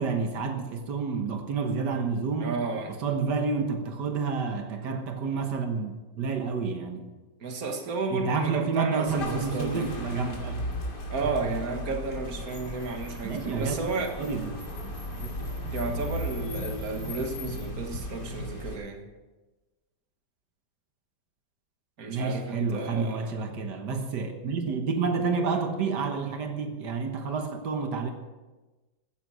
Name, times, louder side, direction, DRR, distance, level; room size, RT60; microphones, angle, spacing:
voice 1, 0.0-7.1 8.1-10.6 11.2-11.3 13.2-13.8 14.2-14.9 15.2-15.4 22.1-28.1, right 5 dB, 90° right, 5 dB, 1.9 m, -29 dB
voice 2, 2.4-2.9 7.4-9.9 11.1-14.1 15.4-19.1 22.0-23.3, right 4 dB, 60° right, 3 dB, 2.0 m, -32 dB
sound 1, 9.1-18.8, left 1 dB, 90° left, 3.2 m, -36 dB
15.0 x 10.0 x 6.3 m, 1.2 s
omnidirectional pair, 1.8 m